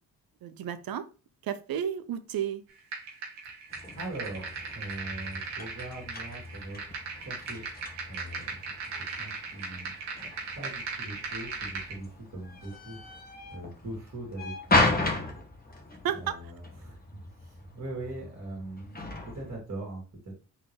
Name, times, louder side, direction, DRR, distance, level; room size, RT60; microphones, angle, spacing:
voice 1, 0.4-1.1 1.4-2.6 16.0-16.4, right 9 dB, 55° right, 0.7 m, -32 dB
sound 1, 2.9-12.0, right 4 dB, 80° right, 1.4 m, -38 dB
sound 2, 3.7-19.6, left 2 dB, 20° left, 1.4 m, -35 dB
voice 2, 4.0-6.8 7.2-7.7 8.1-9.9 10.5-13.0 13.5-15.0 16.1-20.4, right 2 dB, 40° right, 2.5 m, -41 dB
4.4 x 3.7 x 3.3 m
hypercardioid pair, 50°, 42 cm